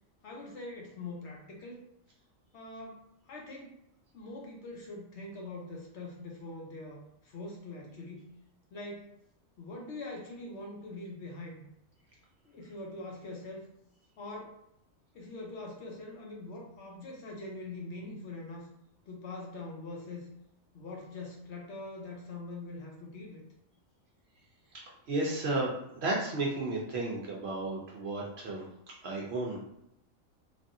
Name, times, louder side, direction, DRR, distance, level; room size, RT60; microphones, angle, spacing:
voice 1, 0.2-1.8 2.5-3.8 4.1-8.3 8.7-9.1 9.6-11.6 12.4-13.6 14.2-14.6 15.1-18.7 19.1-20.3 20.7-23.4, left 2 dB, 60° left, -1 dB, 0.9 m, -43 dB
voice 2, 25.1-28.7 29.0-29.6, right 2 dB, 60° right, -2 dB, 0.7 m, -33 dB
3.3 x 2.5 x 2.5 m, 0.78 s
omnidirectional pair, 1.4 m